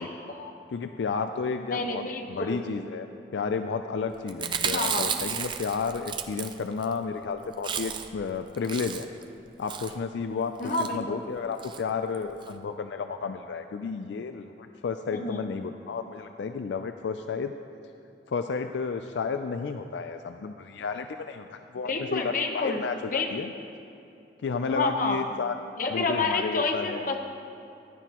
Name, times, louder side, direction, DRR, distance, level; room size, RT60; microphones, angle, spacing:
voice 1, 0.0-0.5 1.7-2.8 4.6-5.1 10.6-11.2 15.1-15.4 21.8-22.8 23.1-23.3 24.7-25.2 25.8-27.2, left 3 dB, 50° left, 3 dB, 1.0 m, -29 dB
voice 2, 0.7-3.1 3.3-9.1 9.6-17.6 18.3-23.5 24.4-25.6 25.9-27.1, left 5 dB, 80° left, 8 dB, 0.4 m, -32 dB
Chewing mastication, 4.3-6.9 7.2-7.3 7.5-8.2 8.5-9.2 9.7-10.0 10.6-10.9 11.6-11.8 12.1-12.2 12.4-12.5, right 7 dB, 25° right, 0.4 m, -32 dB
15.5 x 11.0 x 3.0 m, 2.8 s
head